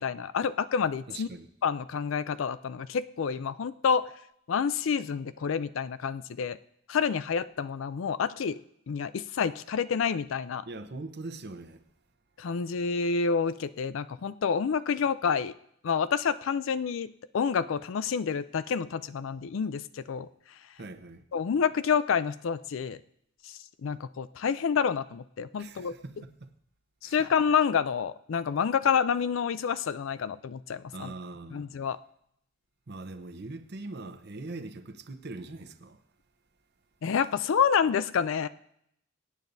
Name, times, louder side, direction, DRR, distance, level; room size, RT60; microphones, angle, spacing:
voice 1, 0.0-1.3 1.6-4.1 4.5-6.6 6.9-8.6 8.9-10.6 12.4-15.5 15.8-20.3 21.3-23.0 23.4-25.9 27.0-31.1 31.5-32.0 37.0-38.5, left 6 dB, 70° left, 0.4 m, -28 dB
voice 2, 1.1-1.5 10.7-11.8 20.8-21.2 25.6-26.5 27.0-27.3 30.9-31.7 32.9-36.0, right 2 dB, 55° right, 0.8 m, -42 dB
22.5 x 9.3 x 2.7 m
head